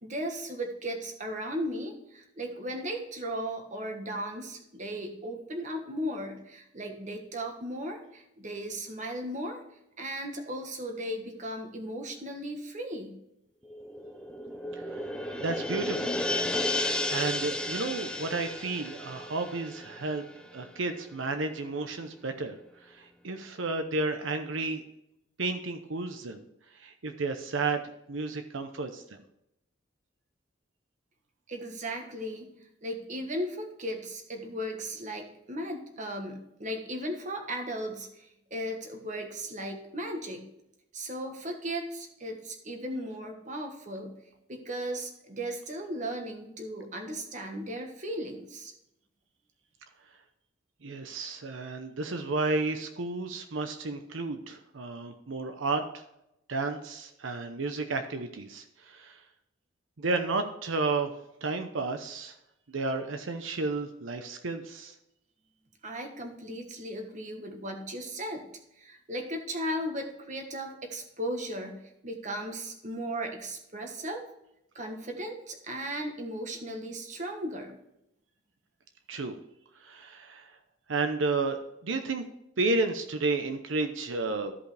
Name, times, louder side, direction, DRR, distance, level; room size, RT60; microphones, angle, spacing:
voice 1, 0.0-9.6 10.0-13.2 31.5-40.5 40.9-44.1 44.5-48.7 65.8-68.4 68.8-74.2 74.7-77.8, equal, 40° right, 3 dB, 1.4 m, -36 dB
sound 1, 13.7-20.7 21.0-21.1, left 1 dB, 5° left, 0.6 m, -33 dB
voice 2, 15.4-16.2 17.1-20.2 20.5-22.6 22.9-24.8 25.4-26.4 26.8-27.8 28.1-29.2 50.8-56.0 56.5-59.2 60.0-61.1 61.4-62.3 62.7-64.9 79.1-79.4 79.8-80.5 80.9-81.6 81.8-82.2 82.6-84.5, right 3 dB, 85° right, 7 dB, 0.8 m, -32 dB
14.0 x 5.3 x 3.3 m, 0.83 s
head